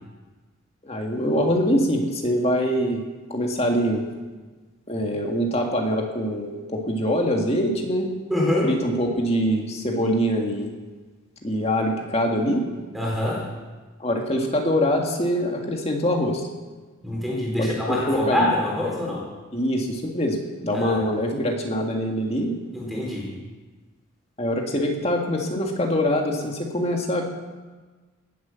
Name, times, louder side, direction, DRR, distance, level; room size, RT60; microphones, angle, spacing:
voice 1, 0.8-3.0 3.3-4.0 4.9-8.1 8.6-10.7 11.4-12.6 14.0-16.4 17.6-18.5 19.5-20.4 20.6-22.6 24.4-27.2, equal, 30° left, 1 dB, 2.0 m, -24 dB
voice 2, 8.3-8.8 12.9-13.5 17.0-19.2 20.7-21.1 22.7-23.3, left 1 dB, ahead, -4 dB, 3.9 m, -25 dB
18.5 x 8.1 x 7.1 m, 1.3 s
head